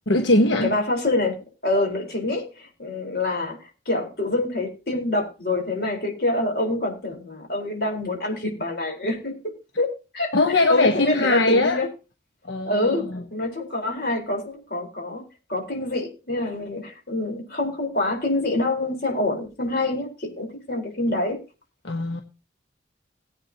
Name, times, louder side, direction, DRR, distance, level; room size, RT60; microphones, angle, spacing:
voice 1, 0.1-0.7 10.3-11.8 12.4-13.2 21.8-22.2, left 2 dB, 85° left, 1.3 m, -21 dB
voice 2, 0.6-3.6 3.9-9.3 9.8-9.9 10.1-10.3 10.7-11.9 12.6-15.2 15.5-21.4, left 2 dB, 55° left, 4.3 m, -26 dB
19.5 x 8.7 x 2.9 m
head